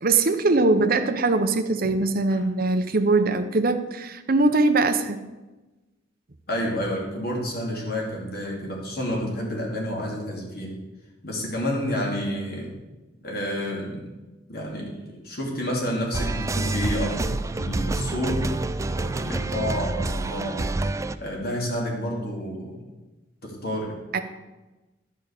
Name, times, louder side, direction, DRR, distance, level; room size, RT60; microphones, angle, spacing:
voice 1, 0.0-5.2 24.1-24.2, right 3 dB, 50° right, 8 dB, 0.8 m, -21 dB
voice 2, 6.5-10.8 11.2-12.7 13.2-14.1 14.5-18.5 18.8-20.8 21.2-22.8 23.4-24.0, equal, 55° left, -1 dB, 2.7 m, -30 dB
sound 1, 16.1-21.2, right 2 dB, 15° right, 0.3 m, -27 dB
10.5 x 5.3 x 8.2 m, 1.1 s
head